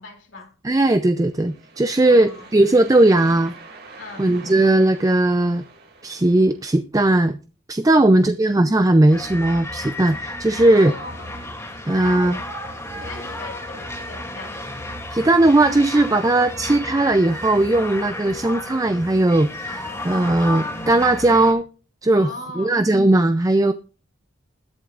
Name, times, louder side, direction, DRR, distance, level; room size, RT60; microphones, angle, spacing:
voice 1, 0.0-0.5 2.0-2.5 4.0-4.3 7.9-8.4 10.7-11.4 11.7-12.5 13.0-14.6 22.1-22.8, left 3 dB, 80° left, 2.8 m, -38 dB
voice 2, 0.6-3.5 4.2-5.6 6.0-7.4 7.7-10.9 11.9-12.4 15.1-21.6 22.0-22.3 22.6-23.7, right 2 dB, 20° right, 0.4 m, -18 dB
sound 1, 1.3-6.7, right 3 dB, 55° right, 2.5 m, -44 dB
sound 2, 9.1-21.5, left 1 dB, 15° left, 2.5 m, -33 dB
20.5 x 8.1 x 2.5 m
head